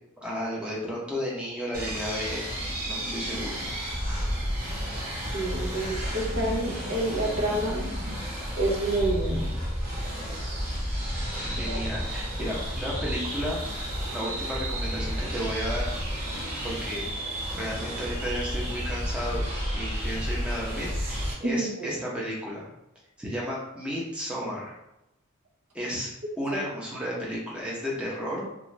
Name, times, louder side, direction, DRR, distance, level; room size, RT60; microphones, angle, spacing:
voice 1, 0.2-2.4 2.9-3.5 11.4-13.6 14.1-15.9 16.4-17.1 17.5-22.7 23.2-24.7 25.7-26.1 26.4-28.5, equal, 5° right, -5 dB, 0.7 m, -33 dB
sound 1, 1.7-21.3, equal, 40° right, 1.0 m, -31 dB
voice 2, 5.3-7.9 8.6-9.5 11.6-11.8 12.4-12.5 21.4-21.9 26.5-26.6, right 1 dB, 75° right, -1 dB, 0.8 m, -28 dB
2.5 x 2.3 x 3.1 m, 0.89 s
head